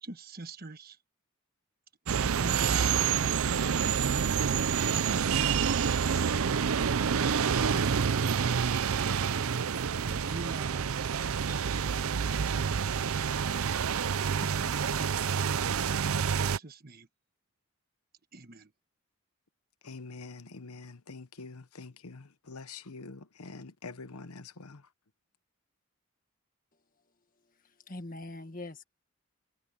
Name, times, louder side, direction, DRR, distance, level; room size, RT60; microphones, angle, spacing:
voice 1, 0.0-1.0 2.1-4.7 5.1-6.6 7.2-11.1 14.4-17.1 18.3-18.7, right 2 dB, 40° right, 1.3 m, -45 dB
sound 1, 2.1-16.6, right 7 dB, 75° right, 0.6 m, -28 dB
voice 2, 19.8-24.8, left 4 dB, 90° left, 1.0 m, -45 dB
voice 3, 27.6-28.8, left 2 dB, 40° left, 1.8 m, -42 dB
head